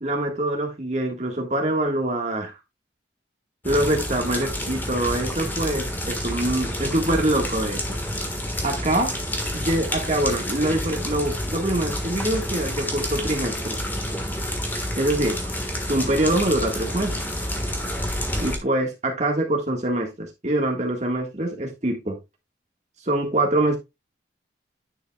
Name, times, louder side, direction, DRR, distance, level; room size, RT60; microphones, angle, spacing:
voice 1, 0.0-2.5 3.6-8.0 8.6-9.1 9.5-13.8 15.0-15.5 15.9-17.2 18.4-22.2 23.0-23.8, right 1 dB, 35° right, 1.6 m, -24 dB
sound 1, 3.6-18.6, left 1 dB, 10° left, 1.4 m, -29 dB
10.0 x 6.4 x 2.3 m
head